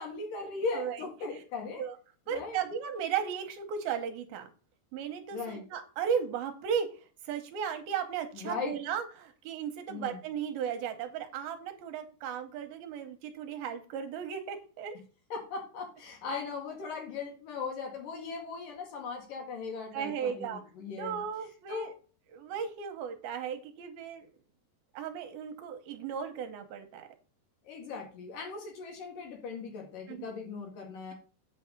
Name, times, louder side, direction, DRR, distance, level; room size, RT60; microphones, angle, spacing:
voice 1, 0.0-1.8 2.3-2.6 5.3-5.6 8.3-8.8 9.9-10.2 15.3-21.2 21.7-21.9 27.6-31.1, left 4 dB, 60° left, 2 dB, 3.5 m, -38 dB
voice 2, 2.3-4.5 4.9-6.9 7.2-15.0 19.9-20.6 21.0-21.9 22.3-24.3 24.9-27.1 30.1-30.3, right 8 dB, 75° right, 7 dB, 2.5 m, -35 dB
8.4 x 4.8 x 6.9 m, 0.38 s
omnidirectional pair, 4.7 m